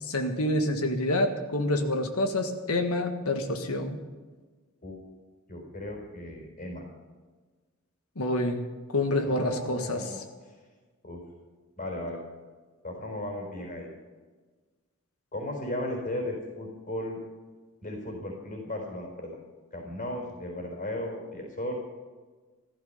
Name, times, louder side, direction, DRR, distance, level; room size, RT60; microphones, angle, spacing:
voice 1, 0.0-4.0 8.1-8.6 8.9-10.1, left 1 dB, 85° left, 6 dB, 1.7 m, -27 dB
voice 2, 5.5-6.8 9.2-10.2 11.0-11.2 11.8-12.2 12.8-13.9 15.3-17.2 17.8-19.4 19.7-21.7, left 1 dB, 40° left, 1 dB, 4.3 m, -36 dB
15.0 x 14.0 x 5.7 m, 1.4 s
head